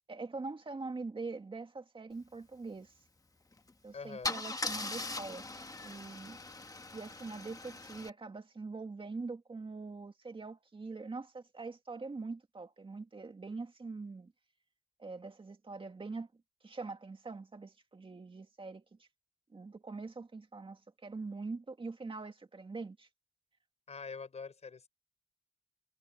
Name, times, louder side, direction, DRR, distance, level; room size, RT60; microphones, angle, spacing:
voice 1, 0.1-2.9 3.8-5.4 5.8-6.4 6.9-14.3 15.0-16.3 16.6-19.1 19.5-23.1, right 3 dB, 50° right, 2.2 m, -43 dB
Car / Engine starting / Idling, 3.5-3.7 4.2-8.1, left 3 dB, 35° left, 1.2 m, -40 dB
voice 2, 3.9-4.3 23.9-24.9, left 5 dB, 85° left, 5.1 m, -44 dB
wide cardioid pair, 90°, 11 cm